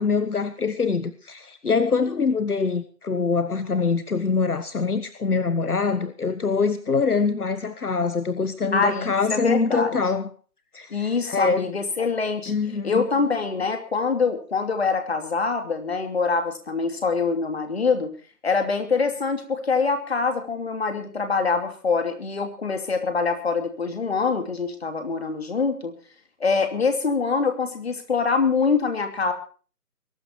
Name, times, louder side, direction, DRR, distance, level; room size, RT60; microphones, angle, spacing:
voice 1, 0.0-10.3 10.7-11.7 12.5-13.0, left 4 dB, 65° left, 12 dB, 1.4 m, -24 dB
voice 2, 8.7-10.0 10.9-12.5 12.8-18.1 18.4-25.9 26.4-29.3, left 4 dB, 40° left, 6 dB, 2.9 m, -24 dB
22.0 x 12.5 x 4.6 m, 0.40 s
figure-of-eight pair, 165°, 48 cm